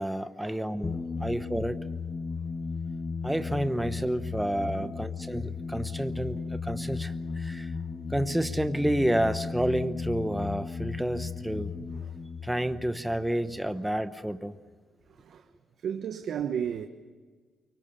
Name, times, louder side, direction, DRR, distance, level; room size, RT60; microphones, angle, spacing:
voice 1, 0.0-1.8 3.2-7.7 8.1-11.7 12.4-14.6, right 1 dB, 5° right, 0.9 m, -30 dB
sound 1, 0.8-14.0, left 5 dB, 25° left, 1.1 m, -35 dB
voice 2, 7.3-7.8 11.8-12.2 13.7-13.8 15.1-15.5 15.8-16.9, right 8 dB, 60° right, 1.3 m, -36 dB
24.5 x 24.0 x 6.9 m
cardioid pair, 115°, 0 cm